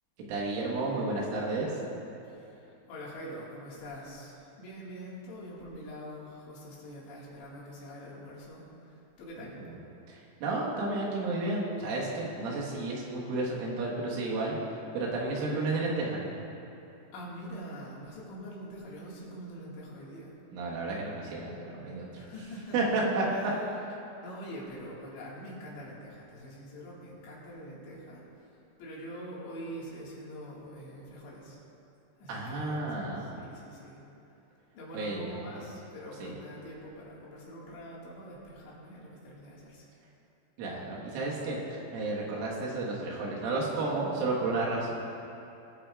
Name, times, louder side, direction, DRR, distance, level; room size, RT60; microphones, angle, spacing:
voice 1, 0.2-1.7 9.6-9.7 10.1-14.6 14.9-16.2 20.5-22.1 22.7-23.2 32.3-33.4 34.9-35.6 36.2-36.3 40.6-41.6 41.9-44.9, right 2 dB, 85° right, -4 dB, 4.0 m, -32 dB
voice 2, 2.2-9.6 17.1-20.4 22.1-23.0 23.3-23.7 24.2-31.6 32.2-32.9 33.2-34.0 34.7-39.9, equal, 70° left, -6 dB, 3.9 m, -44 dB
20.0 x 8.9 x 2.4 m, 2.9 s
omnidirectional pair, 5.6 m